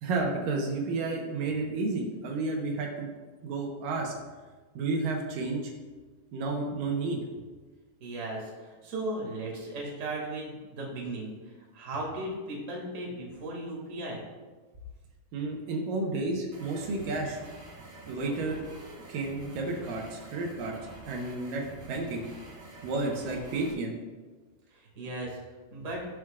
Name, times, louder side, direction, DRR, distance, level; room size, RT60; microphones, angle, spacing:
voice 1, 0.0-3.1 3.4-4.1 4.8-5.7 6.3-7.2 15.3-17.4 18.1-20.7 21.0-22.2 22.8-23.9, right 3 dB, 75° right, 0 dB, 2.7 m, -31 dB
voice 2, 8.0-11.3 11.7-14.2 24.7-25.4 25.7-26.1, right 1 dB, 25° right, -3 dB, 1.9 m, -36 dB
sound 1, 16.5-23.7, right 2 dB, 55° right, 3.7 m, -47 dB
18.5 x 6.3 x 2.4 m, 1.3 s
omnidirectional pair, 4.0 m